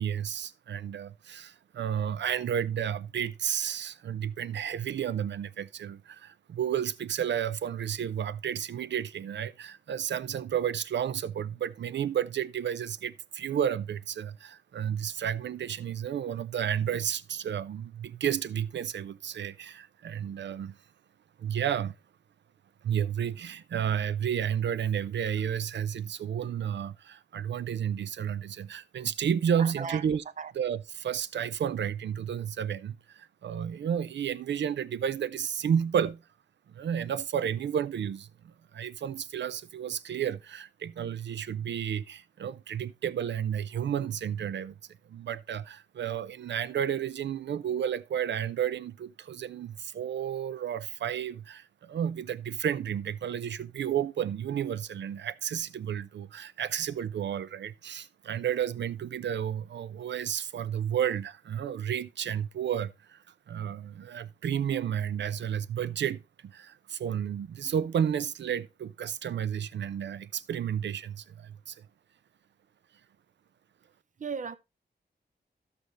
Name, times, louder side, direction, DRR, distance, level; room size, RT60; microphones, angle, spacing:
voice 1, 0.0-20.8 21.4-22.0 22.8-30.2 30.6-36.2 36.7-44.8 45.1-71.9, right 9 dB, 90° right, 0.5 m, -32 dB
voice 2, 29.5-30.1 30.4-30.5 74.2-74.6, right 5 dB, 45° right, 0.6 m, -36 dB
12.5 x 6.7 x 3.1 m
wide cardioid pair, 75°, 18 cm